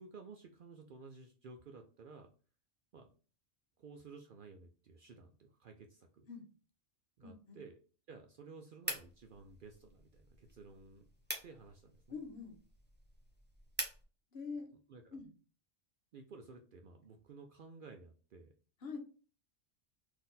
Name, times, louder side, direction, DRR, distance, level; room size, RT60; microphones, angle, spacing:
voice 1, 0.0-2.3 2.9-3.1 3.8-6.3 7.2-7.8 8.1-11.1 11.4-12.2 14.9-15.2 16.1-18.5, right 4 dB, 60° right, 4 dB, 0.6 m, -54 dB
voice 2, 7.2-7.6 12.1-12.6 14.3-14.7 15.1-15.3 18.8-19.0, left 5 dB, 60° left, 3 dB, 1.1 m, -45 dB
sound 1, 8.8-14.0, right 1 dB, 10° right, 0.6 m, -46 dB
4.1 x 2.7 x 3.9 m, 0.38 s
omnidirectional pair, 1.2 m